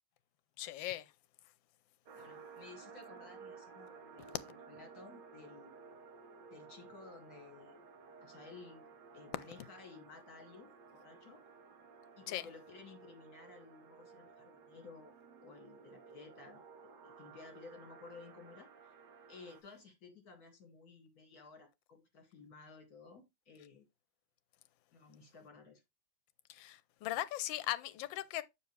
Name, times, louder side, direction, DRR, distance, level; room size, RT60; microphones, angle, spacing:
voice 1, 0.6-1.1 12.3-12.4 26.5-28.4, left 14 dB, 90° left, 1.4 m, -38 dB
voice 2, 2.1-5.8 6.5-7.8 8.2-8.9 9.1-11.4 12.2-15.1 15.4-16.6 17.0-18.9 19.3-23.9 24.9-25.8, left 4 dB, 55° left, 2.6 m, -55 dB
sound 1, 2.1-19.6, right 5 dB, 70° right, 1.8 m, -56 dB
7.1 x 6.0 x 3.2 m
omnidirectional pair, 2.0 m